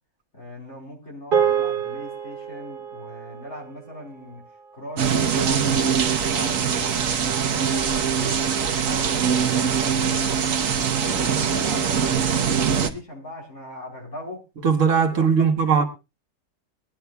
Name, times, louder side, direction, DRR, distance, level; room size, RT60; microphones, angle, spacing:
voice 1, 0.3-4.4 4.7-6.0 6.2-7.0 7.5-10.5 10.9-14.4 15.1-15.9, left 1 dB, 65° left, 4.4 m, -40 dB
sound 1, 1.3-5.8, right 8 dB, 45° right, 1.3 m, -28 dB
sound 2, 5.0-12.9, right 7 dB, 90° right, 1.3 m, -22 dB
voice 2, 14.6-15.8, right 6 dB, 75° right, 1.6 m, -19 dB
21.5 x 10.0 x 2.3 m
omnidirectional pair, 1.3 m